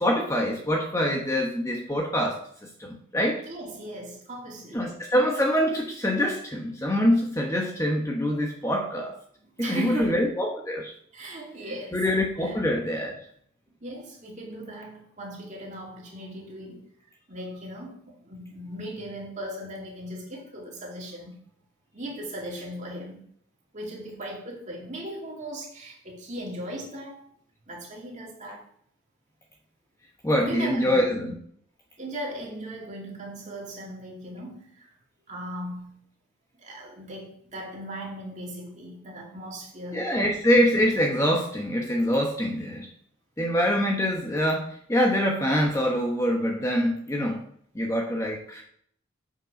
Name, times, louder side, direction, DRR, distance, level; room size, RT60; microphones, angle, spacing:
voice 1, 0.0-2.4 2.8-3.4 4.7-9.1 9.6-10.9 11.9-13.1 30.2-31.3 39.9-42.9 43.4-47.4 47.7-48.6, equal, 15° left, 1.1 m, -25 dB
voice 2, 3.4-4.9 9.6-10.1 11.1-12.0 12.4-12.6 13.8-16.8 17.3-21.4 21.9-23.2 23.7-27.2 27.7-28.7 30.4-31.1 32.0-34.9 35.3-36.0 36.6-40.1, right 1 dB, 35° right, 2.4 m, -38 dB
7.6 x 6.1 x 5.2 m
head